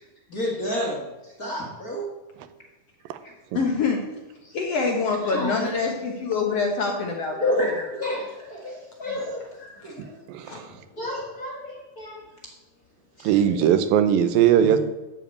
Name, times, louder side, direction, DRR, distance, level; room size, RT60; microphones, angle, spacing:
voice 1, 0.3-1.0 1.4-2.0 5.2-5.7 7.4-9.4 9.8-10.1 11.0-12.2 13.2-13.3 14.6-14.7, left 1 dB, 35° left, -2 dB, 1.6 m, -29 dB
voice 2, 3.5-4.0 4.4-7.5 9.1-9.2 9.6-9.9 10.5-10.6, left 4 dB, 60° left, 1 dB, 1.7 m, -26 dB
voice 3, 10.0-10.7 13.2-14.8, right 9 dB, 90° right, 10 dB, 2.6 m, -20 dB
12.5 x 4.9 x 8.1 m, 1.1 s
omnidirectional pair, 4.1 m